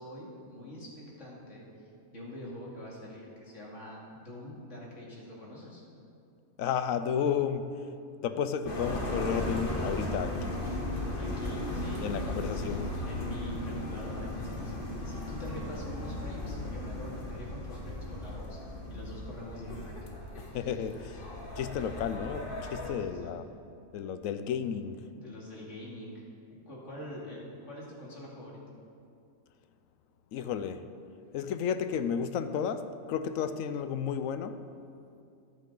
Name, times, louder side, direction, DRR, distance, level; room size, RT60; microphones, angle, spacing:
voice 1, 0.0-1.7 2.1-5.8 11.2-12.7 13.0-18.6 18.9-19.8 22.9-23.4 25.1-26.2 26.5-28.6, equal, 60° left, 2.7 m, -45 dB
voice 2, 6.6-7.7 8.2-10.6 12.0-12.9 20.5-21.2 21.6-23.4 23.9-25.0 30.3-30.9 31.3-34.6, left 7 dB, 80° left, 1.0 m, -32 dB
sound 1, 8.7-22.9, left 1 dB, 40° left, 1.5 m, -36 dB
14.0 x 11.0 x 3.9 m
omnidirectional pair, 1.4 m